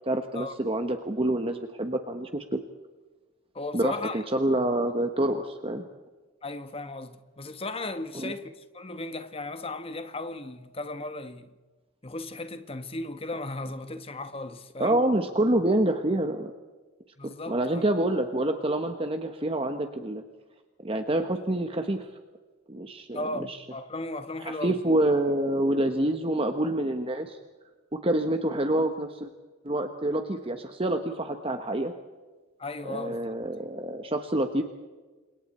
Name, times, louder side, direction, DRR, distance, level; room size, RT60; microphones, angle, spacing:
voice 1, 0.1-2.6 3.7-5.8 8.1-8.3 14.8-16.5 17.2-20.2 20.8-22.1 22.7-23.6 24.4-27.4 28.0-29.3 29.6-31.9 32.8-34.6, right 1 dB, 30° right, 1.2 m, -27 dB
voice 2, 3.5-4.2 6.4-11.5 12.0-15.0 17.2-17.8 23.1-24.8 32.6-33.2, left 2 dB, 30° left, 1.4 m, -36 dB
30.0 x 26.5 x 4.4 m
head